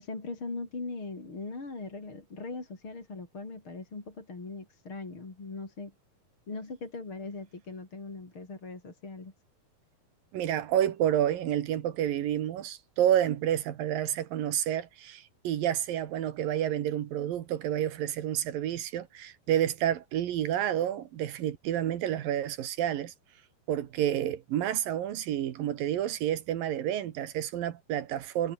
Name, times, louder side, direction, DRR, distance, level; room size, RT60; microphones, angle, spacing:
voice 1, 0.0-5.9 6.5-9.3, left 3 dB, 35° left, 5.5 m, -40 dB
voice 2, 10.3-23.1 23.7-28.5, right 11 dB, 70° right, 3.1 m, -29 dB
omnidirectional pair, 4.3 m